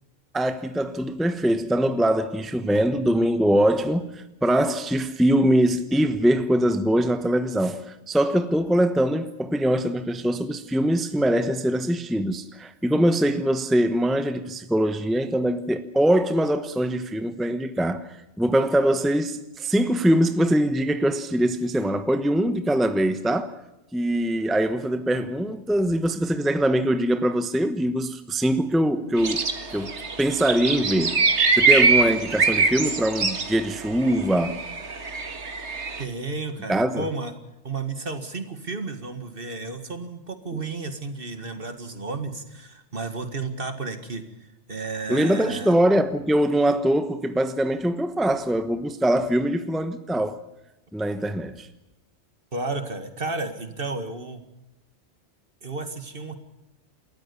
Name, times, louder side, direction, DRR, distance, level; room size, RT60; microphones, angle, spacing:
voice 1, 0.3-23.6 23.9-29.4 29.7-31.2 31.6-34.6 36.7-37.1 40.5-40.6 45.1-50.4 50.9-51.7, right 1 dB, ahead, 1.0 m, -23 dB
sound 1, 29.2-36.0, right 4 dB, 70° right, 2.1 m, -23 dB
voice 2, 36.0-37.3 37.6-45.7 52.5-54.4 55.6-56.3, right 3 dB, 50° right, 2.2 m, -32 dB
28.5 x 14.0 x 7.0 m
omnidirectional pair, 1.2 m